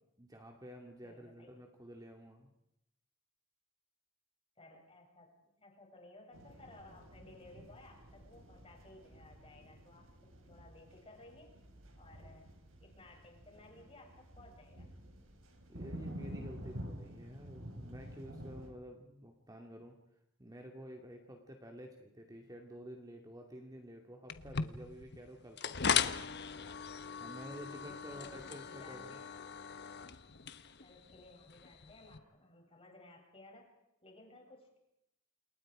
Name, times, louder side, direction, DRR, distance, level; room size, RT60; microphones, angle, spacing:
voice 1, 0.2-2.5 15.7-20.0 20.4-26.0 27.2-29.2, equal, 15° right, 2 dB, 2.5 m, -51 dB
voice 2, 1.0-1.5 4.6-11.6 12.0-12.5 12.8-14.9 27.8-29.3 30.8-33.7 34.0-34.8, left 2 dB, 30° left, 0 dB, 7.8 m, -58 dB
sound 1, 6.3-18.7, equal, 75° right, 5.4 m, -50 dB
sound 2, 24.3-32.2, left 7 dB, 55° left, 1.2 m, -39 dB
29.0 x 28.5 x 5.0 m, 0.84 s
head